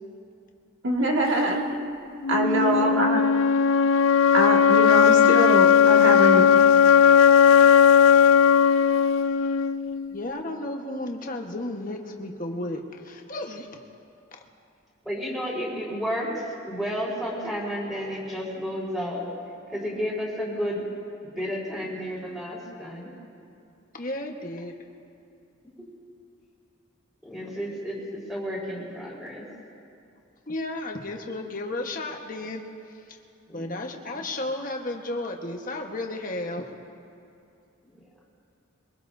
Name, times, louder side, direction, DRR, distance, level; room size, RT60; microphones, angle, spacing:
voice 1, 0.8-1.7 2.3-3.2 4.3-6.4, right 1 dB, 65° right, 0 dB, 2.0 m, -23 dB
sound 1, 2.2-10.2, left 7 dB, 85° left, 0.4 m, -17 dB
voice 2, 2.4-2.9 15.0-19.2 19.7-20.8 21.2-23.1 25.8-25.9 27.2-29.5 33.5-33.8 34.1-34.2, equal, ahead, -6 dB, 4.3 m, -32 dB
voice 3, 10.1-13.7 23.9-24.7 30.5-32.6 33.5-36.6, left 2 dB, 40° left, 2 dB, 1.3 m, -33 dB
23.0 x 22.5 x 2.7 m, 2.6 s
head